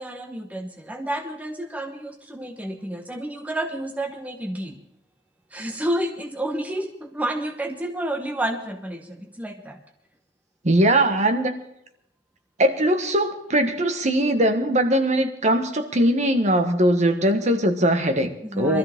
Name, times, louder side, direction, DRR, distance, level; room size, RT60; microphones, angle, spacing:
voice 1, 0.0-4.8 5.5-9.8 18.4-18.8, right 1 dB, 10° right, 3 dB, 1.0 m, -30 dB
voice 2, 10.6-11.6 12.6-18.3 18.6-18.8, right 1 dB, 40° right, 7 dB, 1.4 m, -20 dB
22.5 x 13.5 x 3.7 m, 0.78 s
head